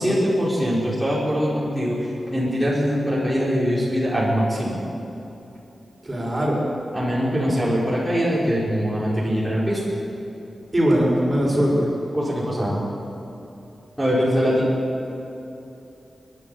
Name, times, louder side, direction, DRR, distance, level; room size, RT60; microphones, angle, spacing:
voice 1, 0.0-2.0 2.3-4.8 6.9-9.9 12.1-12.9 14.0-14.7, equal, 5° right, -8 dB, 5.8 m, -22 dB
voice 2, 6.0-6.6 10.7-11.9, equal, 25° right, -3 dB, 6.6 m, -20 dB
29.0 x 11.5 x 9.0 m, 2.9 s
wide cardioid pair, 90°, 0 cm